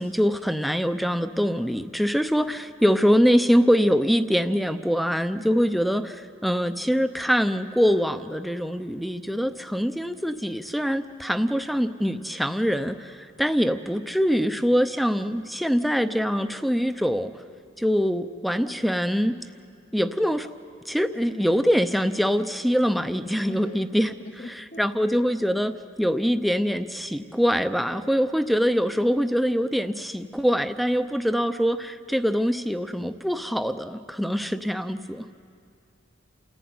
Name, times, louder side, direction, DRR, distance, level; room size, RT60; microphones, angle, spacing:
voice 1, 0.0-17.3 17.8-19.3 19.9-20.5 20.9-24.1 24.5-25.7 26.0-35.2, equal, ahead, 10 dB, 0.6 m, -24 dB
voice 2, 23.4-23.8 24.2-24.9, left 2 dB, 40° left, 10 dB, 0.9 m, -40 dB
28.5 x 15.0 x 9.5 m, 2.4 s
head